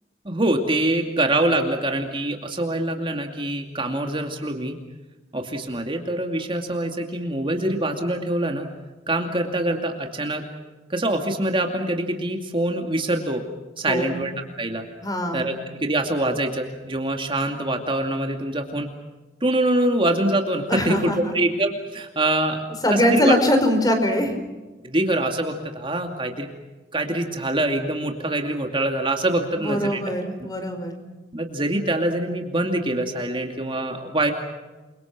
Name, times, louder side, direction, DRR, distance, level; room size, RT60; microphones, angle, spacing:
voice 1, 0.2-4.8 5.3-8.7 9.1-10.4 10.9-13.4 13.8-14.3 14.6-14.9 15.3-15.5 15.8-18.9 19.4-22.6 22.9-23.3 24.8-26.5 26.9-30.0 31.3-34.3, right 1 dB, 30° right, 3 dB, 2.5 m, -24 dB
voice 2, 13.9-14.3 15.0-15.5 20.7-21.2 22.8-24.3 29.6-30.9, left 1 dB, 20° left, 6 dB, 4.9 m, -22 dB
29.0 x 24.5 x 6.1 m, 1.2 s
head